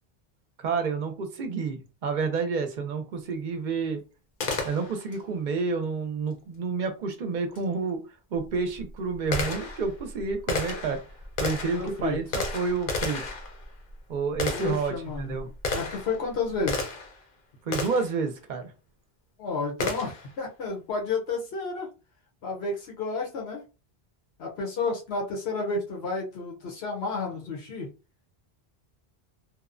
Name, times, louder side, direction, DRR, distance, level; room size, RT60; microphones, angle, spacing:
voice 1, 0.6-4.0 4.6-8.0 8.3-11.0 11.4-13.2 14.1-15.5 17.7-18.7, right 4 dB, 60° right, 7 dB, 0.6 m, -29 dB
Gunshot gunfire, 4.4-5.2 7.5-7.6 8.4-17.2 17.7-18.2 19.8-20.3, left 3 dB, 60° left, 0.7 m, -33 dB
voice 2, 11.7-12.2 14.5-15.4 15.7-16.9 19.4-21.9 22.4-23.6 24.4-27.9, left 3 dB, 85° left, 0 dB, 1.0 m, -31 dB
2.8 x 2.0 x 2.4 m, 0.31 s
omnidirectional pair, 1.0 m